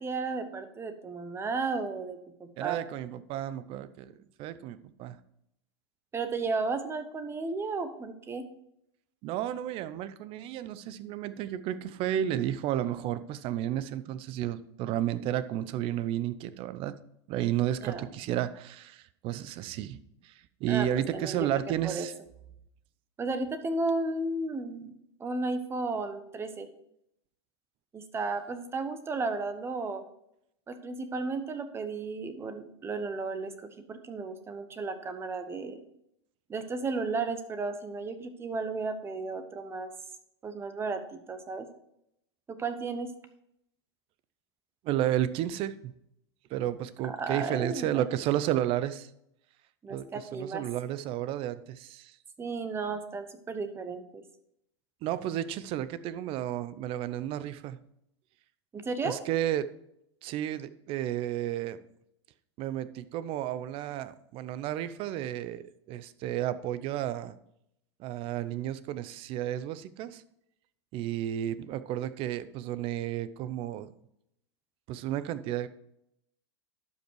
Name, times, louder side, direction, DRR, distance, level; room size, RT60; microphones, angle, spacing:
voice 1, 0.0-2.8 6.1-8.4 17.8-18.1 20.7-21.5 21.8-22.1 23.2-24.9 25.2-26.7 27.9-30.0 30.7-35.8 36.5-39.9 40.4-41.7 42.5-43.1 47.1-48.0 49.8-50.6 52.4-54.2 58.7-59.2, right 3 dB, 15° right, 9 dB, 0.9 m, -34 dB
voice 2, 2.6-4.1 4.4-5.2 9.2-17.0 17.3-22.1 44.8-45.9 46.5-49.1 49.9-52.2 55.0-57.8 59.0-59.7 60.2-61.8 62.6-67.4 68.0-70.2 70.9-73.9 74.9-75.7, right 12 dB, 40° right, 14 dB, 0.6 m, -32 dB
12.0 x 5.4 x 4.7 m, 0.78 s
hypercardioid pair, 125°, 15 cm